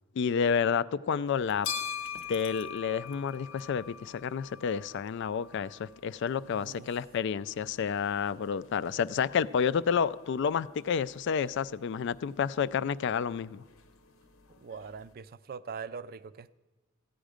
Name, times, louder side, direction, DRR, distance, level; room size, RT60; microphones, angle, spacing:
voice 1, 0.2-1.7 2.3-13.6, left 6 dB, 60° left, 17 dB, 0.3 m, -30 dB
sound 1, 1.3-15.1, left 7 dB, 85° left, 0.9 m, -45 dB
voice 2, 6.5-6.9 14.6-16.5, right 6 dB, 45° right, 15 dB, 0.4 m, -42 dB
14.5 x 9.1 x 5.0 m, 1.2 s
head